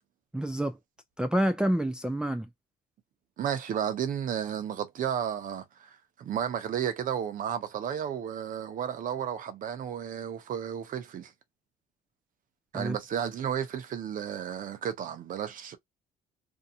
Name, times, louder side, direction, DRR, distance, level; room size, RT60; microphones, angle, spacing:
voice 1, 0.3-0.8 1.2-2.5 12.7-13.0, right 1 dB, 5° right, 0.4 m, -28 dB
voice 2, 3.4-11.3 12.7-15.8, right 9 dB, 50° right, 0.8 m, -33 dB
2.7 x 2.2 x 2.7 m
cardioid pair, 110°, 17 cm